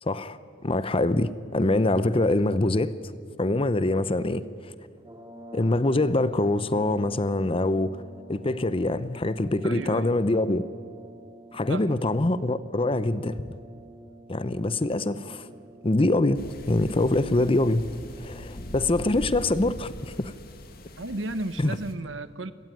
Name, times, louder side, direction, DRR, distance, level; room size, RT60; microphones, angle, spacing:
voice 1, 0.0-2.9 3.4-4.7 5.5-8.0 8.3-10.6 11.5-13.5 14.3-15.5 15.8-16.4 16.7-17.8 18.2-20.3 21.6-21.7, left 2 dB, 30° left, 14 dB, 0.7 m, -24 dB
sound 1, 5.0-20.1, right 1 dB, 20° right, 2.3 m, -49 dB
voice 2, 9.6-10.1 11.7-12.1 21.0-22.5, right 2 dB, 80° right, 13 dB, 1.1 m, -34 dB
sound 2, 16.4-21.9, left 1 dB, 55° left, 2.0 m, -41 dB
26.5 x 17.0 x 9.3 m, 2.1 s
head